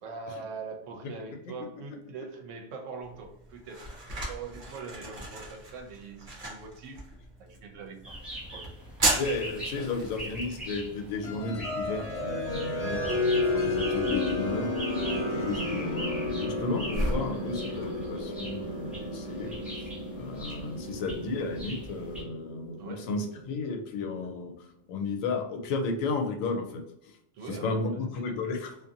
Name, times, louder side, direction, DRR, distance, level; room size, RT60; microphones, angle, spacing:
voice 1, 0.0-4.0 4.3-7.1 7.4-8.2 8.5-8.8 9.8-9.9 15.2-15.5 19.4-19.8 22.8-23.1 27.3-28.4, right 4 dB, 75° right, 3 dB, 0.9 m, -43 dB
sound 1, 3.0-20.6, right 1 dB, 40° right, 0.6 m, -38 dB
sound 2, 8.0-22.2, equal, ahead, 0.7 m, -42 dB
voice 2, 9.1-14.7 15.3-19.5 20.1-27.2 27.5-28.8, left 3 dB, 85° left, 3 dB, 1.0 m, -33 dB
sound 3, 11.2-23.7, left 2 dB, 40° left, 0.6 m, -32 dB
2.5 x 2.5 x 2.6 m, 0.76 s
omnidirectional pair, 1.3 m